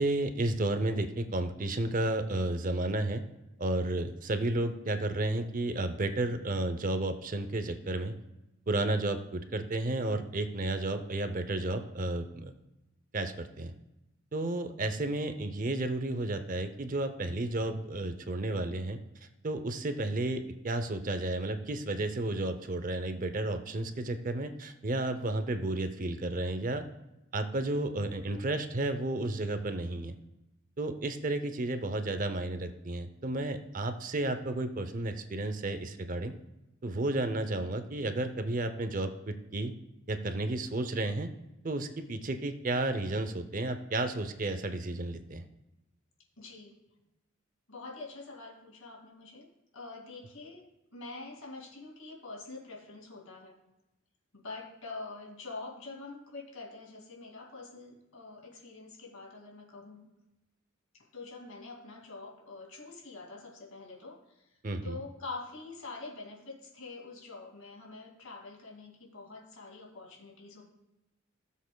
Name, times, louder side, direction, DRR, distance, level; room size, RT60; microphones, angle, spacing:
voice 1, 0.0-3.2 3.6-8.1 8.7-12.5 13.1-13.7 14.3-19.0 19.4-26.8 27.3-30.2 30.8-36.3 36.8-39.7 40.1-41.3 41.6-45.4 64.6-65.0, right 2 dB, 40° right, 9 dB, 0.6 m, -32 dB
voice 2, 46.4-46.8 47.7-49.5 49.7-50.6 50.9-53.6 54.3-60.0 60.9-64.4 64.8-70.6, left 3 dB, 85° left, -1 dB, 2.4 m, -45 dB
17.0 x 7.3 x 2.3 m, 0.95 s
head